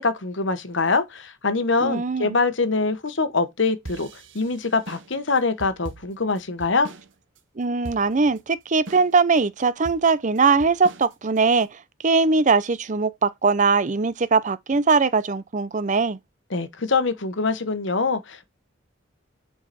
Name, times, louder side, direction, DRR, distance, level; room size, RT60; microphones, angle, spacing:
voice 1, 0.0-4.1 4.3-6.9 16.5-18.5, left 4 dB, 65° left, 1.2 m, -24 dB
voice 2, 1.8-2.4 7.6-16.2, right 4 dB, 40° right, 0.6 m, -21 dB
sound 1, 3.9-7.1 7.4-7.5 7.8-8.4 8.9-9.4 9.9-11.6, right 2 dB, 70° right, 1.1 m, -40 dB
7.1 x 4.8 x 4.2 m
head